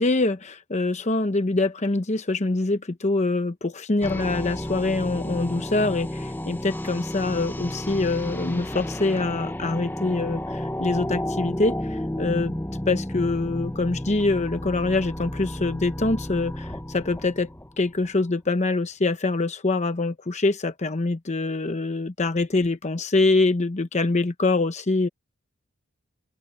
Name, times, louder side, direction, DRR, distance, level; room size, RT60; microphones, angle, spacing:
voice 1, 0.0-12.5 12.9-17.5 17.8-25.1, left 2 dB, 35° left, 0.9 m, -24 dB
sound 1, 4.0-18.1, left 1 dB, 10° left, 1.0 m, -32 dB
open air
head